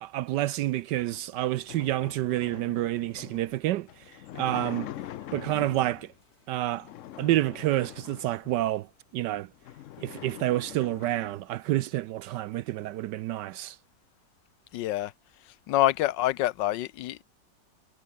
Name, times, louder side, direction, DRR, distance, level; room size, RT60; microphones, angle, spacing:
voice 1, 0.0-3.9 4.3-4.9 5.3-6.1 6.5-6.9 7.2-8.9 9.1-9.5 10.0-13.8, right 15 dB, 75° right, 1.2 m, -28 dB
sound 1, 1.0-6.1 6.7-8.8 9.2-9.3 9.5-11.4, left 13 dB, 70° left, 0.7 m, -44 dB
sound 2, 5.8-12.0, left 2 dB, 55° left, 8.1 m, -68 dB
voice 2, 14.7-15.1 15.7-17.2, left 14 dB, 85° left, 1.3 m, -26 dB
omnidirectional pair, 1.9 m